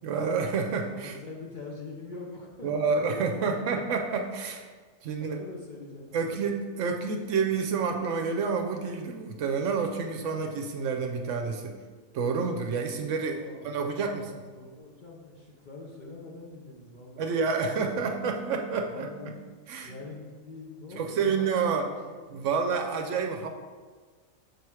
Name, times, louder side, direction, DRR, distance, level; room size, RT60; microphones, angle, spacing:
voice 1, 0.0-1.2 2.6-4.7 5.0-5.4 6.1-11.7 12.1-13.4 13.6-14.3 17.2-19.1 19.7-20.0 20.9-21.9 22.3-23.5, right 5 dB, 70° right, 3 dB, 0.9 m, -29 dB
voice 2, 0.8-3.8 5.3-6.5 13.2-18.1 18.9-19.4 19.8-22.4, left 3 dB, 45° left, -3 dB, 0.7 m, -44 dB
6.5 x 3.2 x 4.7 m, 1.4 s
omnidirectional pair, 1.4 m